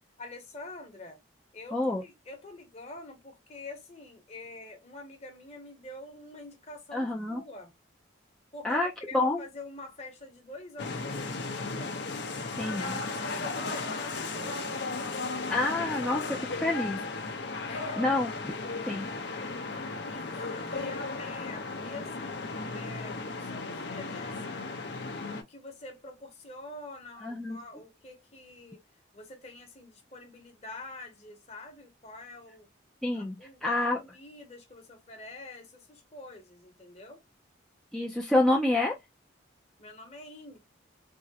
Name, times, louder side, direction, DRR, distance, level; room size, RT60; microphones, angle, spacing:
voice 1, 0.2-1.2 1.5-7.7 8.5-8.8 9.1-12.0 12.8-14.8 17.7-18.0 20.1-28.8 29.1-32.7 33.1-37.2 39.8-40.6, left 2 dB, 35° left, 1.0 m, -46 dB
voice 2, 1.7-2.0 6.9-7.4 8.6-9.4 12.6-12.9 15.5-17.0 18.0-18.3 18.9-19.1 27.2-27.6 33.0-34.0 37.9-38.9, left 2 dB, 5° left, 0.4 m, -28 dB
sound 1, 10.8-25.4, left 3 dB, 60° left, 0.6 m, -35 dB
3.5 x 2.1 x 2.7 m
head